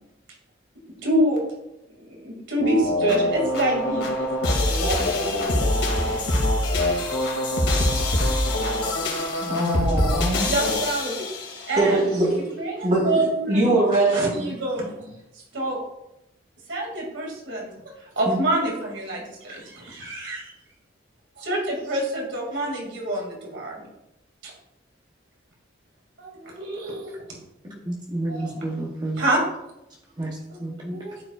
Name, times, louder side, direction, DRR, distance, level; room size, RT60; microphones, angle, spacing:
voice 1, 1.0-1.4 2.0-4.3 4.7-5.0 10.4-11.2 11.7-12.1 12.6-13.7 13.9-14.9 15.3-15.8 16.7-20.5 21.4-23.9 24.4-24.5 26.2-27.2 28.3-28.7 29.2-29.4 30.5-31.2, right 1 dB, 90° right, -2 dB, 2.4 m, -27 dB
sound 1, 2.6-11.8, left 1 dB, 75° left, 2.3 m, -24 dB
voice 2, 9.4-10.5 11.8-12.3 12.8-14.5, right 2 dB, 40° right, -5 dB, 2.8 m, -22 dB
voice 3, 27.6-29.2 30.2-31.0, right 1 dB, 25° right, -3 dB, 1.0 m, -30 dB
12.0 x 4.9 x 2.4 m, 0.87 s
head